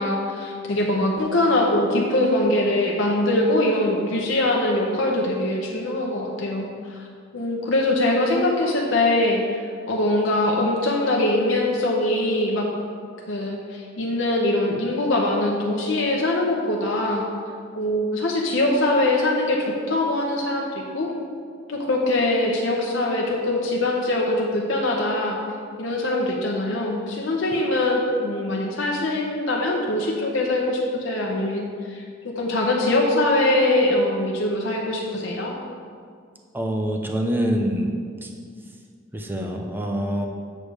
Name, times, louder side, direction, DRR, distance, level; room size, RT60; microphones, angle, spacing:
voice 1, 0.0-7.1 7.3-12.7 13.3-17.3 17.7-21.1 21.7-25.4 25.8-35.5, left 1 dB, 90° left, -2 dB, 0.9 m, -22 dB
voice 2, 36.5-37.9 38.2-38.3 39.1-40.3, equal, 10° right, 2 dB, 0.6 m, -25 dB
8.4 x 3.3 x 6.3 m, 2.1 s
head